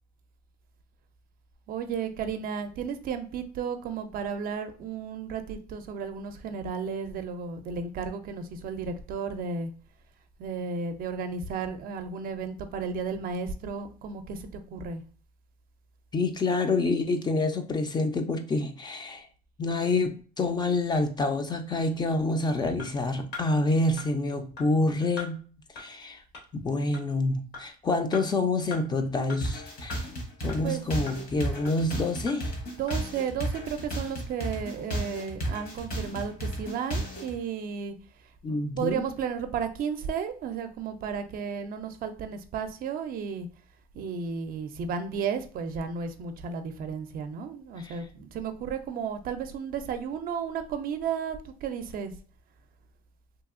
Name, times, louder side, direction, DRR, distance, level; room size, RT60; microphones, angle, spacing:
voice 1, 1.7-9.7 10.4-15.0 30.6-30.8 32.8-37.9 38.5-43.5 43.9-52.1, right 6 dB, 60° right, 8 dB, 0.5 m, -33 dB
voice 2, 16.1-19.3 19.6-25.4 25.8-26.2 26.5-30.1 30.4-32.6 38.4-39.0 47.8-48.0, left 2 dB, 25° left, 6 dB, 0.4 m, -27 dB
sound 1, 22.8-22.9 23.3-23.5 24.0-24.1 24.6-24.7 25.2-25.3 25.8-25.9 26.3-26.4 26.9-27.0 27.5-27.6 28.1-28.2 28.7-28.8 29.3-29.4 29.9-30.0 30.5-30.6 31.1-31.2 31.6-31.7 32.3-32.4 32.9-33.0, left 4 dB, 75° left, 1.4 m, -39 dB
sound 2, 29.4-37.4, right 1 dB, 55° left, 1.1 m, -33 dB
2.8 x 2.6 x 2.4 m, 0.41 s
cardioid pair, 110°, 17 cm